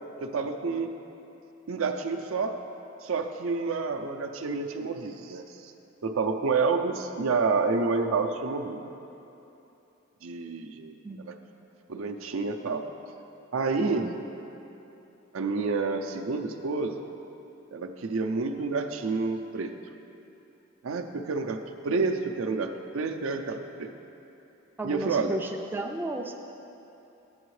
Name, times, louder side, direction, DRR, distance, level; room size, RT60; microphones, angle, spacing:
voice 1, 0.2-0.9 1.7-2.6 3.0-5.7 6.0-8.9 10.2-11.0 11.2-11.4 11.9-12.8 13.5-14.1 15.3-17.0 17.7-19.7 20.8-23.9 24.8-25.4, right 4 dB, 70° right, 5 dB, 0.5 m, -29 dB
voice 2, 13.8-14.2 24.8-26.4, right 2 dB, 10° right, 2 dB, 0.3 m, -34 dB
11.0 x 7.8 x 3.2 m, 2.9 s
head